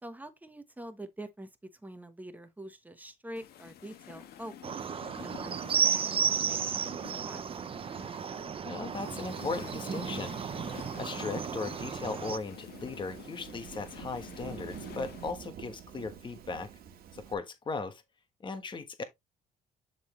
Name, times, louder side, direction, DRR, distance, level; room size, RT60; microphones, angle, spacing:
voice 1, 0.0-4.8 5.2-7.7, right 1 dB, 10° right, 1.1 m, -46 dB
sound 1, 3.4-15.3, left 10 dB, 70° left, 1.3 m, -49 dB
sound 2, 4.6-12.4, right 7 dB, 35° right, 0.6 m, -33 dB
voice 2, 8.6-10.3 11.0-16.7 17.1-18.0 18.4-19.0, left 4 dB, 30° left, 1.3 m, -37 dB
Thunderstorm / Rain, 9.6-17.3, right 8 dB, 65° right, 1.7 m, -48 dB
10.5 x 4.0 x 3.1 m
cardioid pair, 110°, 17 cm